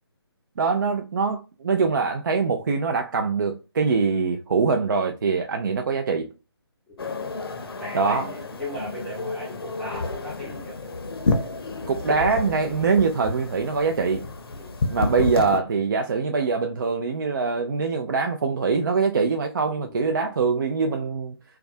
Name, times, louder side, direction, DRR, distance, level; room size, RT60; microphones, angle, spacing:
voice 1, 0.6-6.3 7.9-8.3 11.9-14.2 14.9-21.3, right 4 dB, 50° right, 0.3 m, -23 dB
sound 1, 7.0-15.6, left 3 dB, 65° left, 0.6 m, -30 dB
voice 2, 7.7-10.8 14.5-14.8 19.6-20.3, equal, ahead, 0.6 m, -38 dB
2.3 x 2.2 x 2.5 m
figure-of-eight pair, 145°, 14 cm